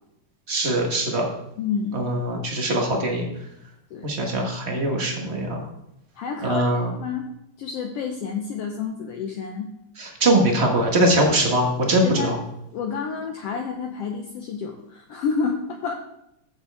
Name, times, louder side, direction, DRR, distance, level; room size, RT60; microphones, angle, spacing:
voice 1, 0.5-1.3 1.9-3.3 4.0-5.6 6.4-6.9 10.0-12.4, right 1 dB, 35° right, 1 dB, 1.1 m, -22 dB
voice 2, 1.6-2.0 3.9-4.1 6.2-7.2 7.6-9.7 12.0-12.4 12.7-15.9, left 6 dB, 70° left, 3 dB, 1.6 m, -29 dB
14.0 x 7.1 x 3.5 m, 0.82 s
omnidirectional pair, 3.3 m